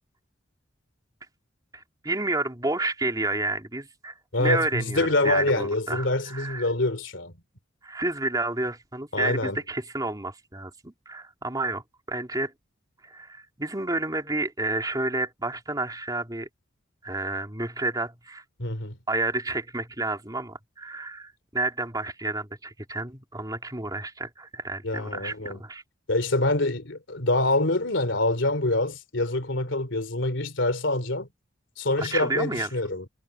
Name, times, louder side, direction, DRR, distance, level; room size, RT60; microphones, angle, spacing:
voice 1, 1.7-6.7 7.8-12.5 13.0-16.5 17.0-18.4 19.1-25.8 32.0-32.7, right 2 dB, 20° right, 2.7 m, -30 dB
voice 2, 4.3-7.3 9.1-9.6 18.6-19.0 24.8-25.6 26.1-31.3 31.8-33.0, left 2 dB, 70° left, 3.1 m, -25 dB
head